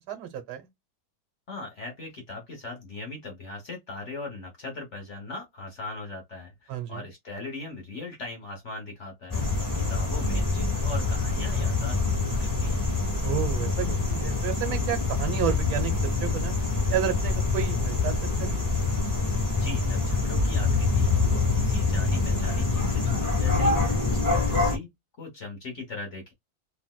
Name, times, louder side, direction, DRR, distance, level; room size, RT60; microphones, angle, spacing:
voice 1, 0.1-0.6 6.7-7.0 13.2-15.9 16.2-16.5 16.9-18.7, right 11 dB, 85° right, 1.7 m, -31 dB
voice 2, 1.5-12.8 19.6-24.9 25.2-26.3, left 3 dB, 45° left, 1.0 m, -39 dB
sound 1, 9.3-24.8, left 3 dB, 30° left, 0.3 m, -25 dB
3.4 x 2.7 x 2.2 m
omnidirectional pair, 2.1 m